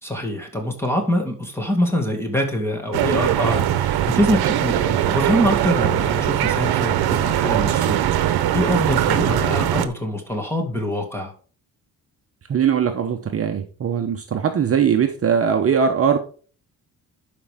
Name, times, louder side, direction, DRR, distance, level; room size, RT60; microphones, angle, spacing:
voice 1, 0.0-11.3, equal, 5° left, 2.2 m, -24 dB
sound 1, 2.9-9.9, right 12 dB, 80° right, 0.9 m, -21 dB
voice 2, 12.5-16.2, right 7 dB, 40° right, 0.9 m, -20 dB
11.5 x 5.2 x 3.6 m
cardioid pair, 140°, 37 cm